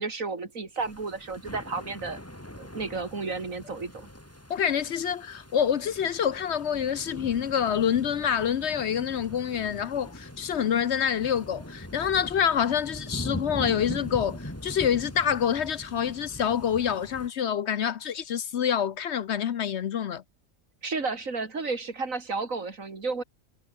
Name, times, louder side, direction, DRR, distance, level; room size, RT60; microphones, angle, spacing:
voice 1, 0.0-2.2 2.6-4.1 20.8-23.2, right 4 dB, 75° right, 3.3 m, -32 dB
sound 1, 0.8-17.3, left 1 dB, 10° left, 3.3 m, -41 dB
voice 2, 4.5-20.2, left 8 dB, 60° left, 1.0 m, -27 dB
omnidirectional pair, 1.4 m